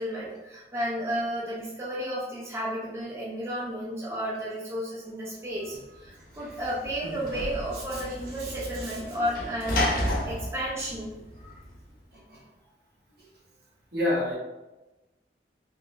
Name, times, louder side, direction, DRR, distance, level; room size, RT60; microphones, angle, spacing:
voice 1, 0.0-10.0 10.2-11.5, equal, 15° right, -7 dB, 0.5 m, -33 dB
Sliding door / Slam, 6.0-11.8, left 1 dB, 50° left, 0.6 m, -33 dB
voice 2, 8.4-9.0 12.1-12.4 13.2-13.3 13.9-14.3, left 1 dB, 60° right, -5 dB, 0.9 m, -31 dB
3.7 x 2.5 x 2.2 m, 1.1 s
head